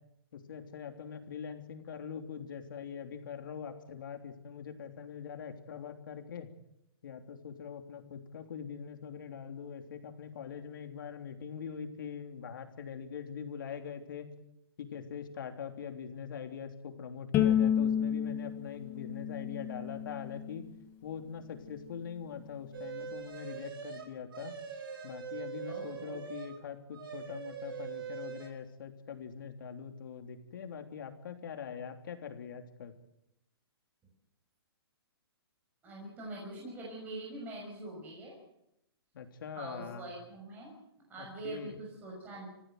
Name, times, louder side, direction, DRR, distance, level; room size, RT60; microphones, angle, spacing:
voice 1, 0.3-6.5 7.0-14.3 14.8-20.7 21.0-24.5 25.0-32.9 39.1-40.1 41.2-41.7, left 7 dB, 50° left, 6 dB, 3.2 m, -43 dB
Bowed string instrument, 17.3-20.6, left 9 dB, 15° left, 1.6 m, -30 dB
sound 1, 22.7-26.6 26.9-28.5, right 7 dB, 55° right, 5.8 m, -42 dB
voice 2, 25.7-26.2 35.8-38.4 39.6-40.7 41.1-42.5, right 2 dB, 10° right, -3 dB, 6.1 m, -44 dB
29.5 x 15.5 x 7.9 m, 0.83 s
hypercardioid pair, 170°, 14 cm